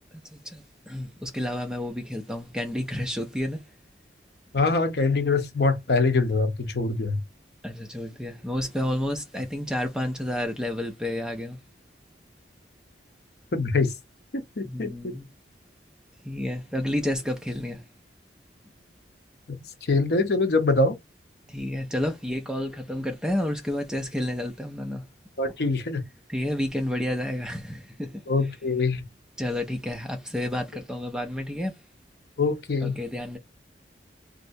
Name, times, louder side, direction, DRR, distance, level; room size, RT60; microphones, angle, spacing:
voice 1, 0.3-3.7 7.6-11.6 14.6-15.3 16.2-17.9 21.5-25.0 26.3-28.2 29.4-31.8 32.8-33.4, left 1 dB, 5° right, 0.4 m, -30 dB
voice 2, 4.5-7.2 13.5-13.9 14.6-15.2 19.5-19.6 19.9-21.0 25.4-26.0 28.3-29.0 32.4-32.9, left 3 dB, 70° left, 0.7 m, -24 dB
3.2 x 2.7 x 2.6 m
head